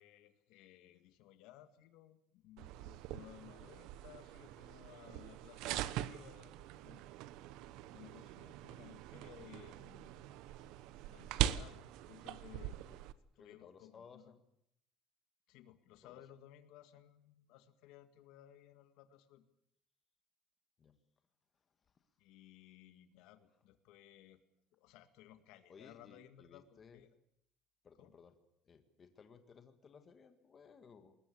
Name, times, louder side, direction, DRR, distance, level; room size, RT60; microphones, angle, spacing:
voice 1, 0.0-7.0 7.9-10.3 11.0-11.8 12.1-12.8 13.4-14.3 15.5-19.4 22.2-24.4 24.7-27.1 28.0-28.1, left 12 dB, 70° left, 10 dB, 1.9 m, -59 dB
sound 1, 2.6-13.1, right 13 dB, 65° right, 1.0 m, -42 dB
voice 2, 12.6-13.0 13.3-14.4 16.0-16.2 20.8-21.0 25.7-27.0 27.8-28.4 28.6-31.1, left 6 dB, 25° left, 8 dB, 1.9 m, -59 dB
20.5 x 20.0 x 8.6 m, 0.74 s
cardioid pair, 165°, 0 cm